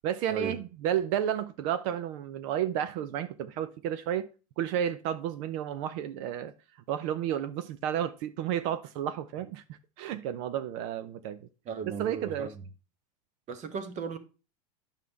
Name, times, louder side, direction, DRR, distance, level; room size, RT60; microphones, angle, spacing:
voice 1, 0.0-4.3 4.6-6.5 6.9-9.6 10.0-11.4 12.0-12.5, right 10 dB, 55° right, 0.6 m, -31 dB
voice 2, 11.6-12.6 13.5-14.2, right 5 dB, 35° right, 1.2 m, -36 dB
9.2 x 5.6 x 3.4 m
hypercardioid pair, 95°, 20 cm